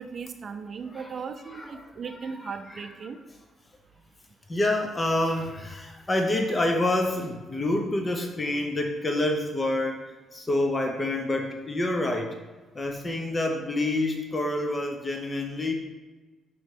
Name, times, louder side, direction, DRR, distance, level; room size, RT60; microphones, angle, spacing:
voice 1, 0.0-3.2, right 5 dB, 45° right, 6 dB, 0.6 m, -37 dB
voice 2, 4.5-10.0 10.3-12.3 12.7-15.7, left 1 dB, 25° left, 3 dB, 0.8 m, -27 dB
6.1 x 3.2 x 5.3 m, 1.2 s
cardioid pair, 90°, 0 cm